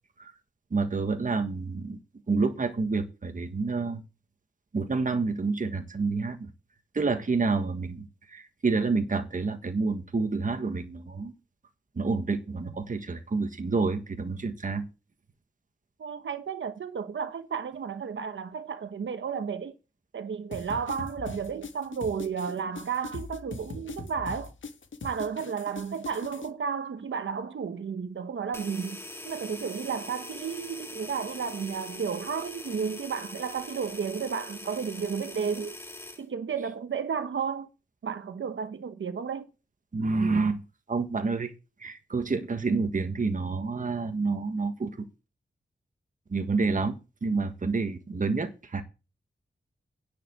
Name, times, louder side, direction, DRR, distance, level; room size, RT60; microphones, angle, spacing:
voice 1, 0.7-2.0 2.3-4.0 4.7-6.5 6.9-11.3 12.0-14.9 39.9-40.6 40.9-41.5 41.8-44.9 46.3-47.0 47.2-48.8, right 4 dB, 45° right, 1.5 m, -28 dB
voice 2, 16.0-19.8 20.1-24.5 25.0-35.8 36.2-37.7 38.0-39.5, right 6 dB, 85° right, 1.1 m, -33 dB
sound 1, 20.5-26.5, left 3 dB, 85° left, 1.7 m, -41 dB
sound 2, 28.5-36.2, left 1 dB, 15° left, 2.5 m, -42 dB
10.0 x 6.8 x 8.1 m
wide cardioid pair, 125°, 19 cm